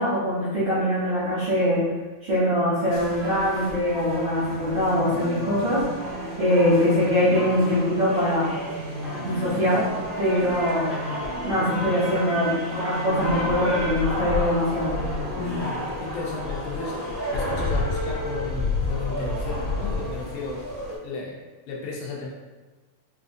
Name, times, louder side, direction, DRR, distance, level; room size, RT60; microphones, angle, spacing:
voice 1, 0.0-1.8 2.2-5.8 6.4-8.5 9.1-9.8 10.2-11.0 11.4-14.9, left 1 dB, 55° right, -12 dB, 1.5 m, -23 dB
sound 1, 2.9-20.9, left 1 dB, 65° left, 0.8 m, -31 dB
sound 2, 4.4-15.7, right 2 dB, 75° right, 1.9 m, -37 dB
voice 2, 15.4-20.6 21.0-21.4 21.7-22.3, left 3 dB, 85° left, -2 dB, 2.3 m, -34 dB
6.2 x 2.4 x 2.6 m, 1.3 s
omnidirectional pair, 3.5 m